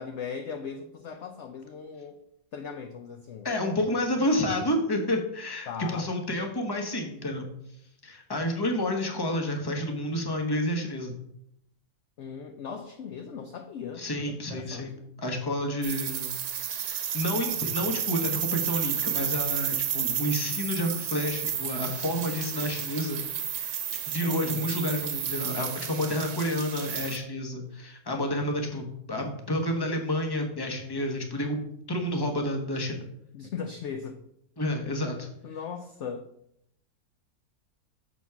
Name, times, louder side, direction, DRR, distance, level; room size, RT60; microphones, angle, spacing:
voice 1, 0.0-2.2 2.5-3.5 5.7-6.1 12.2-15.1 24.2-24.7 33.3-34.2 35.4-36.3, left 6 dB, 65° left, 6 dB, 0.8 m, -38 dB
voice 2, 3.4-7.4 8.0-11.2 14.0-14.9 15.2-16.3 16.7-23.2 23.5-31.6 31.9-33.0 34.6-35.3, left 1 dB, 15° left, 3 dB, 1.0 m, -30 dB
sound 1, 15.8-27.2, right 9 dB, 85° right, 1.3 m, -32 dB
7.0 x 4.1 x 5.8 m, 0.75 s
omnidirectional pair, 1.6 m